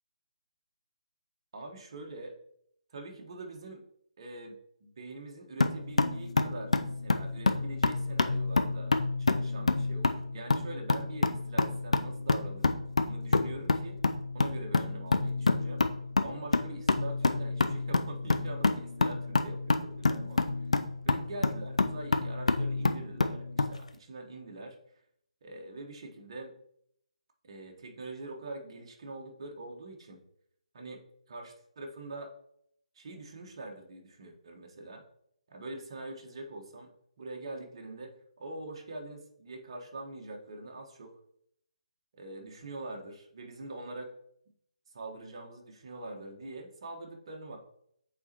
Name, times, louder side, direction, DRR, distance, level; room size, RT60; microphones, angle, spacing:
voice 1, 1.5-2.3 2.9-3.8 4.2-4.5 4.8-6.7 7.0-8.9 9.2-12.8 13.0-14.0 14.3-15.8 16.2-20.4 21.0-24.8 25.4-26.5 27.4-30.2 30.7-32.3 32.9-35.0 35.5-36.9 37.2-41.2 42.1-44.1 44.9-47.6, right 2 dB, 45° right, 2 dB, 1.3 m, -44 dB
sound 1, 5.6-23.8, left 3 dB, 65° left, 0.5 m, -28 dB
8.5 x 4.1 x 2.9 m, 0.71 s
figure-of-eight pair, 145°, 4 cm